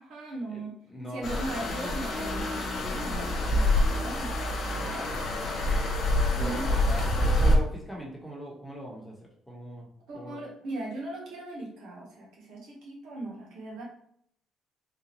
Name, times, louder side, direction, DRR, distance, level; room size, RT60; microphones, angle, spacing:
voice 1, 0.0-0.7 1.1-2.6 3.0-4.3 4.7-5.1 6.3-6.8 10.1-13.8, right 2 dB, 80° right, -2 dB, 1.2 m, -38 dB
voice 2, 0.9-1.7 2.1-3.6 4.7-5.8 6.4-9.2 9.5-10.4, equal, 5° left, -3 dB, 1.2 m, -42 dB
sound 1, 1.2-7.6, left 1 dB, 60° left, 1.0 m, -26 dB
3.9 x 2.5 x 3.0 m, 0.68 s
cardioid pair, 90°, 0 cm